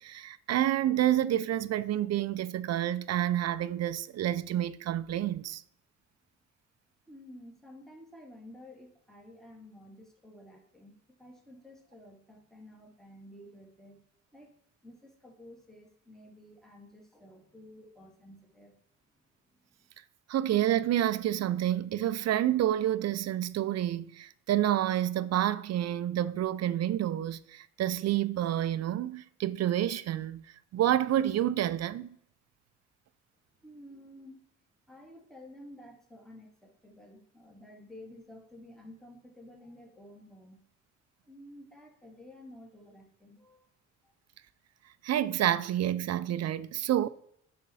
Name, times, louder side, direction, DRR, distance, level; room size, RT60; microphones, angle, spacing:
voice 1, 0.0-5.6 20.3-30.4 30.7-32.1 45.0-47.1, right 12 dB, 60° right, 0.5 m, -29 dB
voice 2, 7.1-14.0 14.3-14.6 14.8-18.8 19.5-19.7 33.6-34.4 34.9-40.6 41.3-43.7 44.0-44.1, left 1 dB, ahead, 1.9 m, -52 dB
10.5 x 4.3 x 4.1 m
cardioid pair, 90°, 30 cm